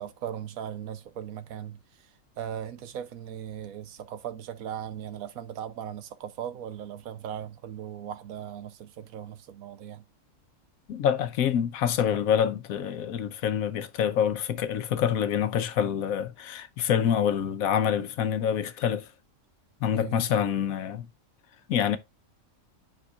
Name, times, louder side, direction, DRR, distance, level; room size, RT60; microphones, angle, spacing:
voice 1, 0.0-1.8 2.4-10.0 19.9-20.3, right 9 dB, 85° right, 1.2 m, -38 dB
voice 2, 10.9-19.0 19.8-21.1 21.7-22.0, left 9 dB, 85° left, 1.2 m, -26 dB
9.8 x 5.3 x 2.4 m
omnidirectional pair, 1.4 m